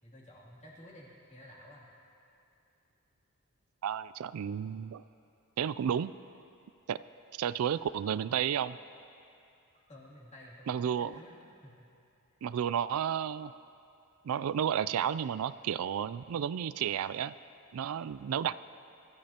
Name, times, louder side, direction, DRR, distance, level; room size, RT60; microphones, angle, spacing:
voice 1, 0.0-1.9 9.9-11.4 11.6-11.9, equal, 30° left, -5 dB, 2.8 m, -52 dB
voice 2, 3.8-5.0 5.6-6.1 6.9-7.0 7.4-8.8 10.7-11.2 12.4-13.5 14.2-17.3 17.7-18.6, right 8 dB, 80° right, 15 dB, 0.3 m, -32 dB
25.0 x 14.0 x 2.9 m, 2.7 s
head